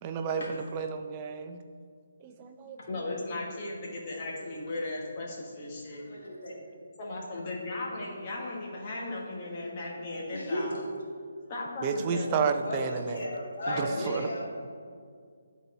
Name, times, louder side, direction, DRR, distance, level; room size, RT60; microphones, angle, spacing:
voice 1, 0.0-1.6 2.2-2.8 11.8-13.2 13.7-14.3, right 6 dB, 25° right, 7 dB, 0.5 m, -31 dB
voice 2, 2.9-6.0 7.0-10.8 11.5-12.6 13.7-14.5, left 2 dB, 30° left, -3 dB, 1.5 m, -36 dB
voice 3, 6.1-6.5 10.3-11.0 12.6-14.5, left 1 dB, 55° left, -3 dB, 2.1 m, -35 dB
11.0 x 4.1 x 4.2 m, 2.1 s
hypercardioid pair, 160°, 0 cm